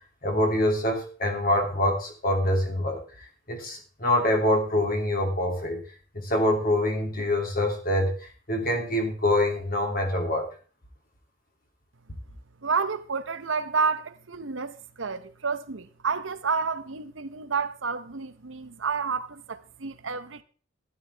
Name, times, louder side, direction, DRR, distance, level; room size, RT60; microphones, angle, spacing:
voice 1, 0.2-5.8 6.1-10.5, left 1 dB, 50° left, 2.7 m, -25 dB
voice 2, 12.6-20.4, right 5 dB, 85° right, 0.9 m, -30 dB
12.5 x 11.5 x 3.4 m
head